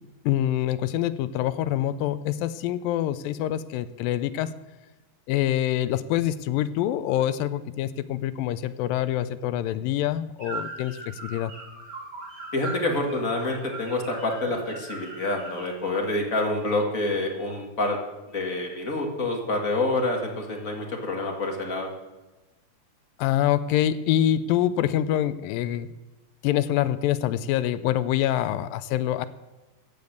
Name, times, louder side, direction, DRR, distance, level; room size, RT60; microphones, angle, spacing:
voice 1, 0.3-4.6 5.3-11.5 23.2-25.9 26.4-29.3, left 12 dB, 80° left, 14 dB, 2.1 m, -25 dB
sound 1, 10.4-15.7, right 3 dB, 45° right, 5.4 m, -39 dB
voice 2, 12.5-18.0 18.3-21.9, left 2 dB, 35° left, 1 dB, 1.5 m, -27 dB
15.0 x 6.9 x 7.9 m, 1.1 s
omnidirectional pair, 4.4 m